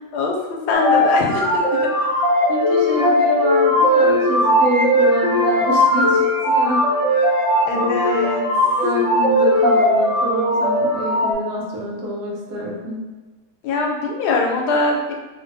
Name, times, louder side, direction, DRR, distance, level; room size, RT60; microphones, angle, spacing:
voice 1, 0.1-1.8 7.7-8.4 13.6-15.1, left 3 dB, 85° left, 0 dB, 1.1 m, -22 dB
sound 1, 0.7-11.3, left 1 dB, 40° left, 0.5 m, -18 dB
voice 2, 2.5-7.3 7.7-7.9 8.7-13.0, equal, 85° right, -2 dB, 1.3 m, -26 dB
2.6 x 2.5 x 2.5 m, 1.2 s
omnidirectional pair, 1.7 m